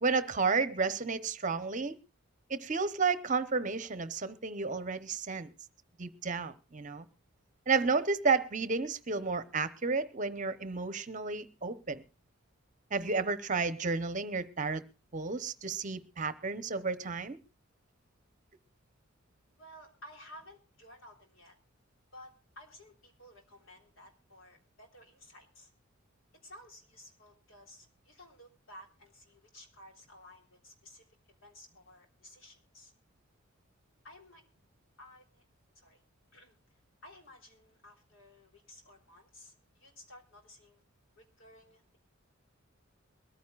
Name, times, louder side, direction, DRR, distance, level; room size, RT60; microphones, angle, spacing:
voice 1, 0.0-2.0 2.5-5.5 6.0-7.1 7.7-12.0 12.9-14.8 15.1-17.4, right 4 dB, 40° right, 0.9 m, -32 dB
voice 2, 19.6-21.6 22.1-25.7 26.4-31.1 31.4-32.9 34.0-34.4 35.0-35.4 35.8-36.0 36.3-36.6 37.0-40.8 41.2-42.0, left 1 dB, 70° left, 3.7 m, -55 dB
22.5 x 14.5 x 2.4 m
head